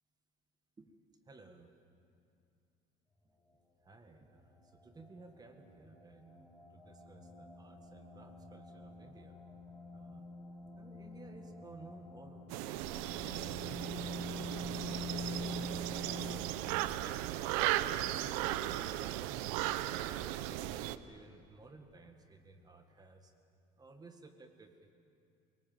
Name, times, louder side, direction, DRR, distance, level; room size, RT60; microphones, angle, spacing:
voice 1, 1.3-1.7 3.8-9.4 9.9-10.3 10.7-15.1 16.6-17.7 18.1-19.5 19.7-23.3 23.8-24.9, right 3 dB, 20° right, 6 dB, 1.7 m, -57 dB
sound 1, 4.1-16.4, left 2 dB, 15° left, 7.2 m, -47 dB
sound 2, 12.5-21.0, right 14 dB, 90° right, 0.8 m, -36 dB
27.5 x 19.0 x 7.8 m, 2.5 s
supercardioid pair, 110°, 18 cm